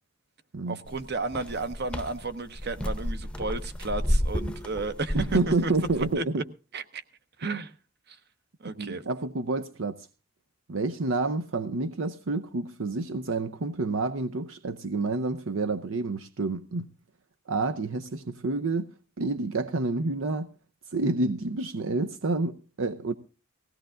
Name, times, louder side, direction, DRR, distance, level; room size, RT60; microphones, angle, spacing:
voice 1, 0.7-5.7 6.0-6.2 6.7-7.0 7.4-7.7 8.1-8.2 8.6-9.1, right 3 dB, 55° right, 1.1 m, -33 dB
sound 1, 0.9-6.1, equal, 5° left, 0.7 m, -31 dB
voice 2, 5.1-6.4 8.7-10.1 10.7-16.9 17.5-20.5 20.9-23.1, right 3 dB, 80° right, 0.7 m, -29 dB
19.5 x 16.5 x 2.5 m
head